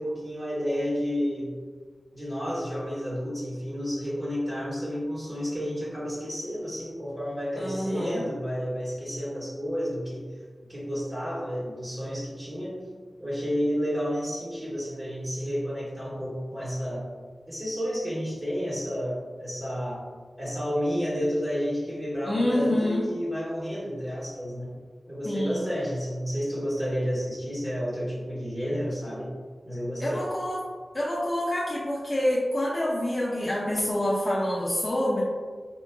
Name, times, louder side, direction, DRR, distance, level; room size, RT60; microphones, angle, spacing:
voice 1, 0.0-1.6 2.1-10.3 10.6-12.9 13.2-17.1 17.5-20.0 20.4-24.7 25.1-29.3 29.6-30.2, equal, 30° right, -8 dB, 1.2 m, -31 dB
voice 2, 7.6-8.2 22.2-23.0 25.2-25.7 30.0-30.6 30.9-35.2, left 1 dB, 35° left, -7 dB, 0.5 m, -27 dB
4.4 x 2.4 x 2.2 m, 1.5 s
wide cardioid pair, 100°, 0 cm